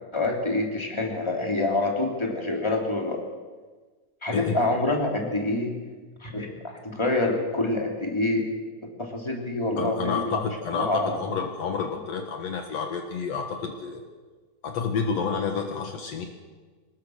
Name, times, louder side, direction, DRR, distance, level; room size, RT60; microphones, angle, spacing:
voice 1, 0.1-3.2 4.2-5.7 6.2-8.5 8.8-10.4 10.7-11.2, left 2 dB, 10° left, 1 dB, 3.2 m, -26 dB
voice 2, 9.8-14.0 14.6-16.3, left 5 dB, 60° left, 4 dB, 2.7 m, -29 dB
25.0 x 20.0 x 6.6 m, 1.4 s
omnidirectional pair, 3.4 m